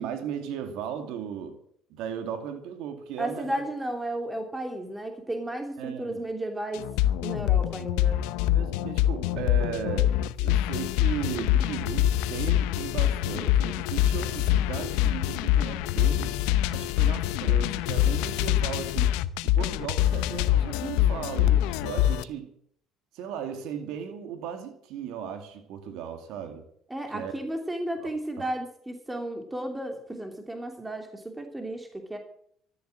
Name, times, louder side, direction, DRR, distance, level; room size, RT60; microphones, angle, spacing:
voice 1, 0.0-1.6 1.9-3.6 5.8-6.2 8.5-10.1 10.4-16.4 16.7-19.2 19.4-22.5 23.1-26.6 27.1-27.3 28.0-28.1, right 8 dB, 75° right, 7 dB, 2.5 m, -36 dB
voice 2, 3.2-6.9 7.2-8.2 26.9-32.2, right 1 dB, 10° right, 4 dB, 2.9 m, -33 dB
sound 1, 6.7-22.2, left 12 dB, 90° left, 0.8 m, -25 dB
13.5 x 13.5 x 7.8 m, 0.67 s
cardioid pair, 95°, 0 cm